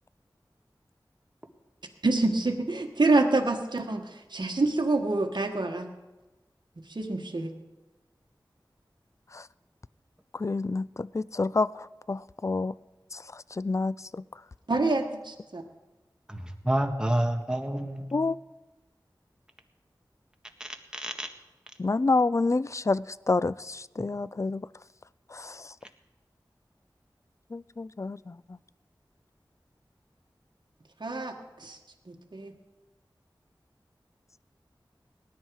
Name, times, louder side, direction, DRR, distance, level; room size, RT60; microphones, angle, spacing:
voice 1, 2.0-5.9 6.9-7.5 14.7-15.6 31.0-31.8 32.1-32.5, right 2 dB, 60° right, 2 dB, 1.4 m, -27 dB
voice 2, 10.4-11.7 12.1-12.7 13.6-14.0 18.1-18.4 21.8-24.6 27.5-28.2, left 3 dB, 35° left, 19 dB, 0.4 m, -27 dB
voice 3, 16.3-18.1 20.6-21.3, right 1 dB, 10° right, 4 dB, 1.6 m, -29 dB
19.0 x 10.5 x 4.7 m, 1.1 s
wide cardioid pair, 50°, 8 cm